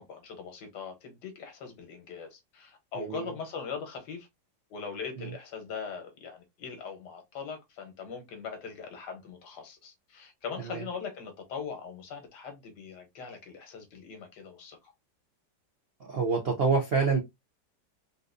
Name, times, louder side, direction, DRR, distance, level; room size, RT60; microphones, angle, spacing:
voice 1, 0.0-4.3 4.7-14.9, left 6 dB, 70° left, 1.6 m, -41 dB
voice 2, 3.0-3.3 5.2-5.3 10.7-10.8 16.1-17.2, right 4 dB, 70° right, 0.5 m, -27 dB
3.9 x 2.5 x 2.5 m
omnidirectional pair, 1.9 m